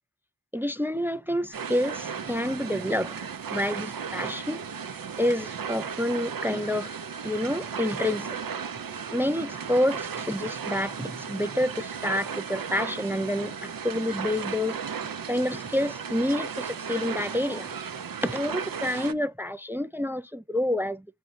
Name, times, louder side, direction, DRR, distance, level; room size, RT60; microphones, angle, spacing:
voice 1, 0.5-3.2 3.5-4.6 5.2-7.0 7.2-8.4 9.1-14.8 15.3-17.7 18.2-21.1, left 1 dB, 5° right, 0.3 m, -28 dB
sound 1, 1.5-19.1, right 6 dB, 70° right, 0.5 m, -35 dB
6.2 x 2.6 x 3.0 m
wide cardioid pair, 40°, 35 cm